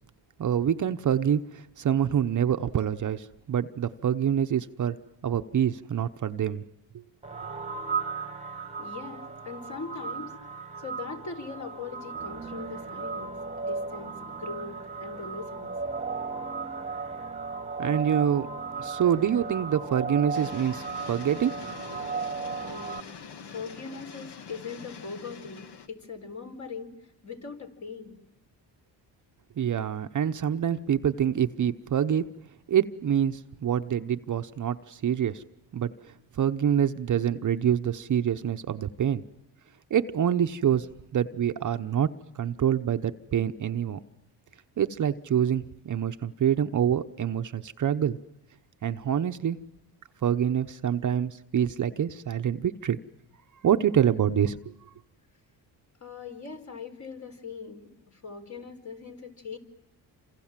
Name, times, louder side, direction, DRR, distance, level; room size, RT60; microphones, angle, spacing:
voice 1, 0.4-5.0 5.2-6.6 17.8-18.5 18.8-21.5 21.9-22.0 29.6-32.3 32.7-35.4 35.7-35.9 36.3-39.2 39.9-40.9 41.1-44.0 44.8-48.2 48.8-49.6 50.2-53.0 53.6-54.6, right 9 dB, 45° right, 8 dB, 0.9 m, -26 dB
sound 1, 7.2-23.0, right 4 dB, 15° right, 1.5 m, -35 dB
voice 2, 8.8-10.3 10.8-15.7 22.6-23.1 23.4-27.0 27.2-28.1 56.0-59.6, left 4 dB, 40° left, 4 dB, 4.4 m, -41 dB
sound 2, 20.3-25.9, left 6 dB, 65° left, 1.7 m, -44 dB
28.5 x 26.5 x 7.5 m, 0.87 s
cardioid pair, 95°, 43 cm